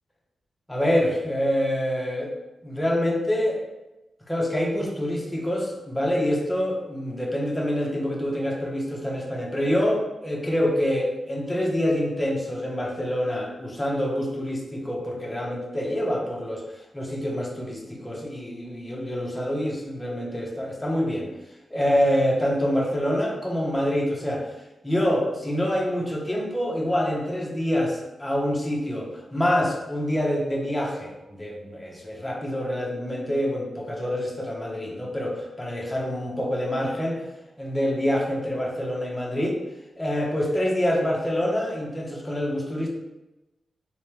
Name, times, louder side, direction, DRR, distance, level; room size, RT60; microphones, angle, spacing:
voice 1, 0.7-2.3 2.6-3.6 4.3-21.3 21.7-24.5 24.8-37.3 37.6-39.6 40.0-42.9, equal, 10° left, -1 dB, 0.8 m, -26 dB
3.3 x 3.2 x 3.2 m, 1.0 s
wide cardioid pair, 110°, 0 cm